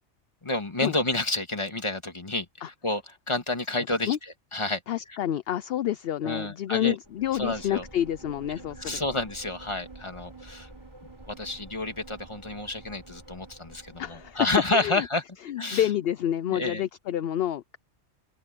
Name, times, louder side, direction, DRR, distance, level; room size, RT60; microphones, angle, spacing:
voice 1, 0.4-4.8 6.2-7.0 7.3-7.8 8.8-10.7 11.2-15.2 15.6-15.9 16.5-16.8, left 2 dB, 25° left, 1.9 m, -30 dB
voice 2, 4.9-9.0 14.0-14.5 14.7-15.1 15.5-17.8, left 11 dB, 60° left, 0.7 m, -28 dB
sound 1, 7.0-14.9, right 2 dB, 20° right, 4.7 m, -48 dB
open air
omnidirectional pair, 1.3 m